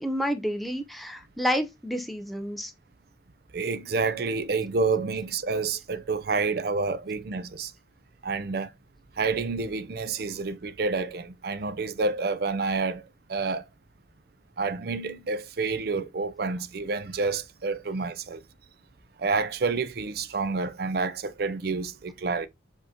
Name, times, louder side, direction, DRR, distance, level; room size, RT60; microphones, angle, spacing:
voice 1, 0.0-2.7, equal, ahead, 0.6 m, -29 dB
voice 2, 3.5-7.7 8.2-8.7 9.2-13.0 13.3-13.6 14.6-18.4 19.2-22.5, right 4 dB, 55° right, 0.5 m, -29 dB
5.2 x 3.6 x 2.8 m
head